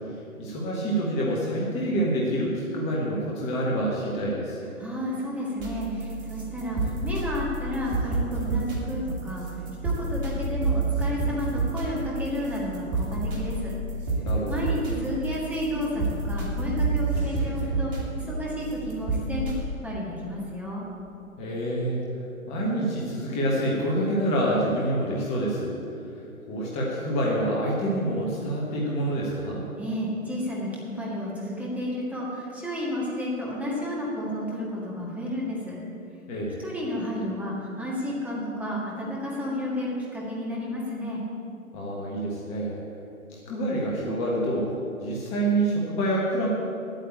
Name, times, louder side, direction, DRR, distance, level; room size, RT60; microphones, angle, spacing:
voice 1, 0.4-4.6 14.2-14.5 21.4-22.0 22.5-25.8 26.5-29.6 36.3-36.5 41.7-42.8 43.3-44.7 45.0-46.5, right 1 dB, 15° left, -4 dB, 1.4 m, -27 dB
voice 2, 4.8-13.7 14.5-20.8 29.8-35.8 36.6-41.2, left 1 dB, 5° right, -5 dB, 1.7 m, -31 dB
sound 1, 5.6-19.6, right 3 dB, 40° right, 3.0 m, -29 dB
9.2 x 9.1 x 8.6 m, 2.6 s
figure-of-eight pair, 125°, 42 cm